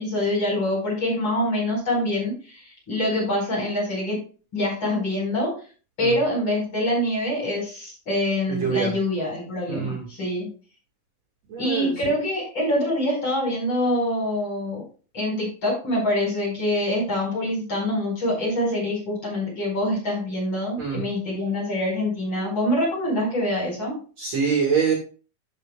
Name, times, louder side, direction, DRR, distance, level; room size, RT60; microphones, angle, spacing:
voice 1, 0.0-4.2 4.5-5.5 6.0-10.5 11.6-14.8 15.1-24.0, left 1 dB, 30° left, -3 dB, 5.2 m, -25 dB
voice 2, 9.7-10.0 11.5-11.9 20.8-21.0 24.2-24.9, right 6 dB, 50° right, 0 dB, 2.7 m, -24 dB
13.5 x 6.2 x 2.3 m, 0.38 s
omnidirectional pair, 4.1 m